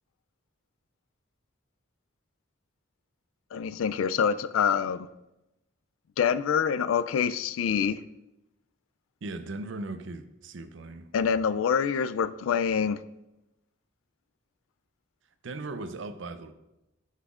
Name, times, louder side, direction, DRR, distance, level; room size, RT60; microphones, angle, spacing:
voice 1, 3.5-5.1 6.2-8.0 11.1-13.0, left 7 dB, 90° left, 0.3 m, -26 dB
voice 2, 9.2-11.1 15.4-16.5, right 2 dB, 70° right, 0.5 m, -38 dB
9.6 x 5.7 x 2.4 m
head